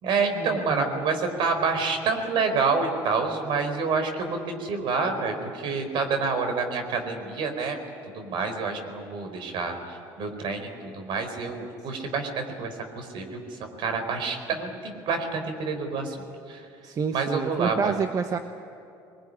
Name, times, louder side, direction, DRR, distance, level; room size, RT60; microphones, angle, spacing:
voice 1, 0.0-7.8 8.1-16.2 16.5-16.7 17.1-17.9, right 4 dB, 65° right, 6 dB, 4.6 m, -28 dB
voice 2, 0.7-1.1 16.8-18.4, right 6 dB, 40° right, 7 dB, 1.1 m, -28 dB
22.0 x 22.0 x 9.8 m, 2.6 s
supercardioid pair, 95°, 9 cm